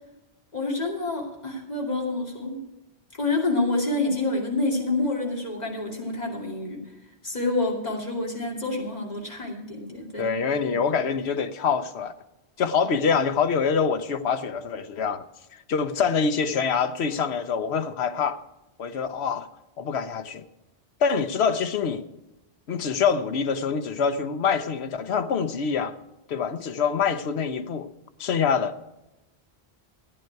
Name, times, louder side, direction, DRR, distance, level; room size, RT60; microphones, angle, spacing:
voice 1, 0.5-2.6 3.1-6.8 7.2-10.3 10.6-10.8, left 2 dB, 40° left, 2.7 m, -28 dB
voice 2, 10.2-12.1 12.6-15.2 15.5-18.4 18.8-19.5 19.8-20.4 21.0-22.1 22.7-25.9 26.3-27.9 28.2-28.8, left 6 dB, 85° left, 1.1 m, -25 dB
13.5 x 10.5 x 4.6 m
omnidirectional pair, 1.1 m